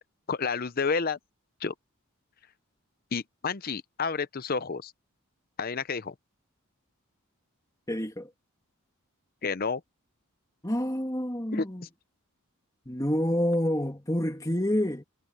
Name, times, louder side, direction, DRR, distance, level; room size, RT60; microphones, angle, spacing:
voice 1, 0.3-1.2 1.6-1.7 3.1-4.9 5.6-6.1 9.4-9.8 11.5-11.6, left 5 dB, 40° left, 0.7 m, -30 dB
voice 2, 7.9-8.3 10.6-11.9 12.9-15.0, equal, 15° left, 2.6 m, -28 dB
head